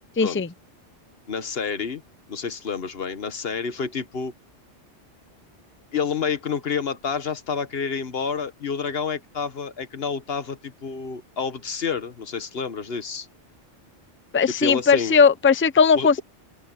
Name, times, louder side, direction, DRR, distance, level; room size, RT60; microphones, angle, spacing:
voice 1, 0.2-0.5 14.3-16.2, left 5 dB, 15° left, 0.4 m, -18 dB
voice 2, 1.3-2.0 2.3-4.3 5.9-13.3 14.6-15.2 15.9-16.2, left 6 dB, 55° left, 1.5 m, -29 dB
open air
omnidirectional pair, 1.2 m